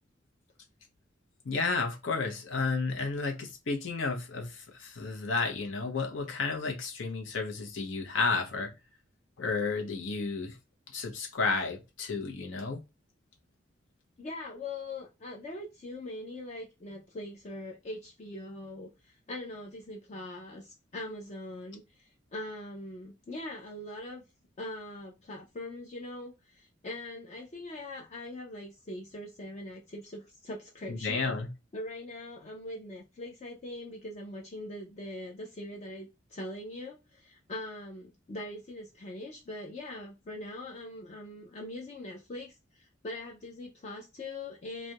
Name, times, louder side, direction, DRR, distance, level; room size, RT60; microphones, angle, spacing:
voice 1, 1.4-8.7 9.4-10.6 10.9-12.8 30.9-31.5, left 4 dB, 75° left, 0.7 m, -32 dB
voice 2, 14.2-24.2 24.6-31.4 31.7-44.9, left 1 dB, 35° left, 0.4 m, -42 dB
2.3 x 2.1 x 2.7 m
head